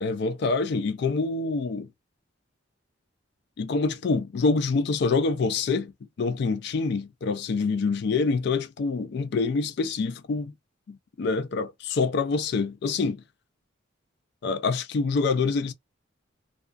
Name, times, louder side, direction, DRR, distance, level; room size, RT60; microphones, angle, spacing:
voice 1, 0.0-1.9 3.6-5.9 6.2-10.5 10.9-13.2 14.4-15.7, left 4 dB, 55° left, 0.3 m, -26 dB
2.3 x 2.3 x 2.3 m
head